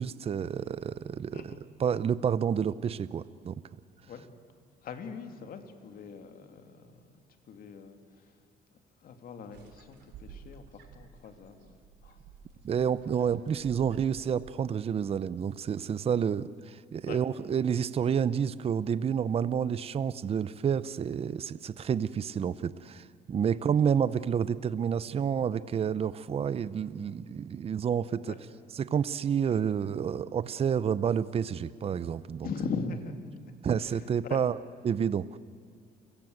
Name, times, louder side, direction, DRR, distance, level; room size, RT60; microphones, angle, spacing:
voice 1, 0.0-3.6 12.6-28.4 28.7-32.5 33.6-34.6 34.8-35.4, right 7 dB, 35° right, 16 dB, 0.7 m, -29 dB
voice 2, 4.8-7.2 7.5-8.0 9.0-11.8 12.0-12.2 17.1-17.2 23.5-23.6 28.2-28.4 32.4-33.1 33.9-34.4, left 5 dB, 60° left, 6 dB, 2.7 m, -40 dB
sound 1, 9.5-15.1, right 6 dB, 80° right, 3.9 m, -52 dB
29.5 x 17.0 x 7.9 m, 2.2 s
cardioid pair, 110°, 17 cm